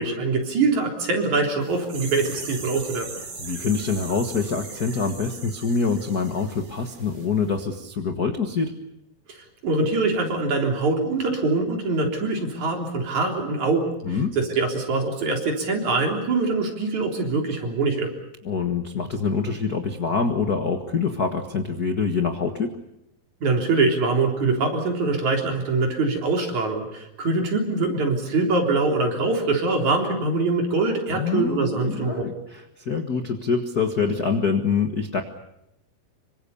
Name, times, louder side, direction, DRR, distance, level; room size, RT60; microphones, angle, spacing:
voice 1, 0.0-3.1 9.3-18.1 23.4-32.2, right 3 dB, 50° right, 2 dB, 4.9 m, -23 dB
sound 1, 1.6-7.3 7.5-7.6, right 4 dB, 70° right, 6.1 m, -39 dB
voice 2, 3.4-8.7 14.0-14.3 18.4-22.8 31.1-35.2, left 5 dB, 55° left, 6 dB, 1.0 m, -25 dB
26.5 x 24.5 x 7.0 m, 0.83 s
omnidirectional pair, 4.3 m